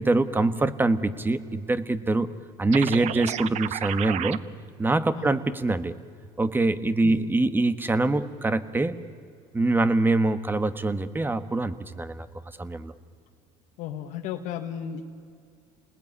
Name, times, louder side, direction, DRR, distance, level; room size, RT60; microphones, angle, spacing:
voice 1, 0.0-2.3 2.6-4.4 4.8-5.9 6.4-9.0 9.5-12.3 12.6-12.9, right 2 dB, 15° right, 13 dB, 1.4 m, -24 dB
sound 1, 2.7-4.4, right 12 dB, 60° right, 0.9 m, -31 dB
voice 2, 13.8-15.0, left 9 dB, 80° left, 3 dB, 1.7 m, -34 dB
29.5 x 20.0 x 9.9 m, 2.3 s
cardioid pair, 110°, 13 cm